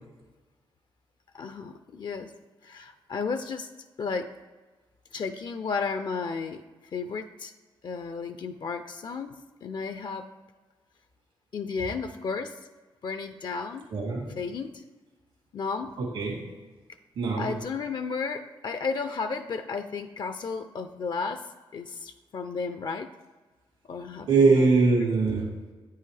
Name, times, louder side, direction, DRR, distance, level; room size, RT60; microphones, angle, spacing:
voice 1, 1.3-2.3 2.6-3.7 4.0-4.3 5.1-6.6 6.9-7.5 7.8-9.3 9.6-10.3 11.5-12.6 13.0-13.9 14.4-14.8 15.5-15.9 17.4-21.4 21.7-23.1 23.9-24.7, left 5 dB, 50° left, 9 dB, 0.4 m, -33 dB
voice 2, 13.9-14.3 16.0-16.4 17.2-17.5 24.3-25.5, right 4 dB, 85° right, -2 dB, 2.5 m, -22 dB
8.7 x 5.5 x 3.3 m, 1.3 s
cardioid pair, 70°, 9 cm